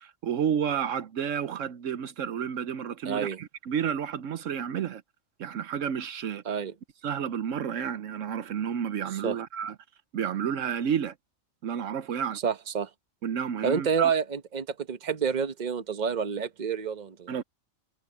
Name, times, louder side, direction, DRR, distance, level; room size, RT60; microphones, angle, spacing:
voice 1, 0.0-5.0 5.4-6.6 7.0-9.7 10.1-11.1 11.6-12.4 13.2-14.1 17.3-17.4, right 8 dB, 75° right, 1.1 m, -31 dB
voice 2, 3.0-3.4 6.4-6.7 9.2-9.4 12.4-12.9 13.6-17.4, right 7 dB, 35° right, 1.1 m, -28 dB
omnidirectional pair, 1.4 m